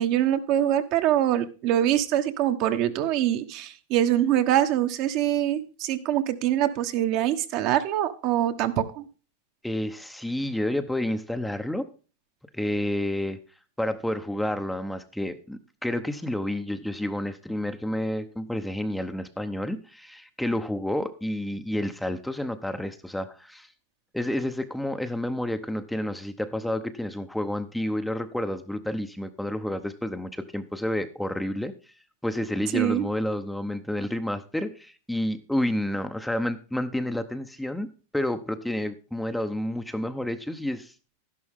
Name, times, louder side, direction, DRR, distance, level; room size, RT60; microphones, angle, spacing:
voice 1, 0.0-9.1 32.7-33.1, right 11 dB, 50° right, 8 dB, 1.2 m, -24 dB
voice 2, 9.6-11.9 12.5-13.4 13.8-23.7 24.1-31.7 32.2-40.9, left 1 dB, 5° left, 8 dB, 0.8 m, -30 dB
12.0 x 11.0 x 3.6 m, 0.35 s
supercardioid pair, 130°, 0 cm